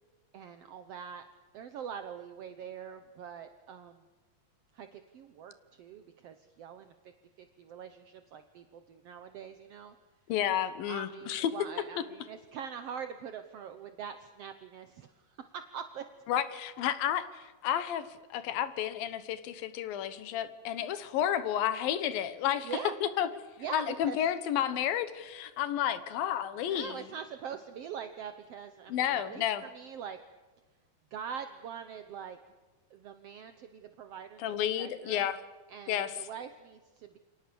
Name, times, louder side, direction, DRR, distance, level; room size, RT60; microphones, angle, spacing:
voice 1, 0.3-1.2 1.5-4.0 4.7-6.9 7.4-9.9 10.9-16.0 20.7-20.9 22.6-22.9 23.6-24.2 26.7-30.2 31.1-32.4 32.9-35.3 35.7-37.2, right 7 dB, 70° right, 8 dB, 1.4 m, -43 dB
voice 2, 10.3-11.5 16.3-22.7 23.0-23.3 23.7-27.0 28.9-29.6 34.4-35.4 35.9-36.3, left 10 dB, 80° left, 13 dB, 3.0 m, -31 dB
29.0 x 24.0 x 7.0 m, 1.3 s
omnidirectional pair, 4.1 m